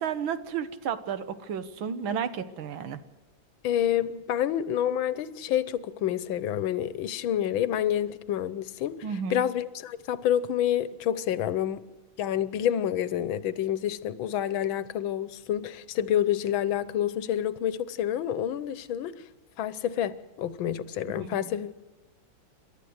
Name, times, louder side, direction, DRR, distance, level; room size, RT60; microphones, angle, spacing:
voice 1, 0.0-3.0 9.0-9.4 21.2-21.4, right 7 dB, 85° right, 1.9 m, -32 dB
voice 2, 3.6-9.0 9.3-11.8 12.2-19.1 19.6-21.7, left 10 dB, 85° left, 1.6 m, -28 dB
28.0 x 12.5 x 8.0 m
omnidirectional pair, 2.1 m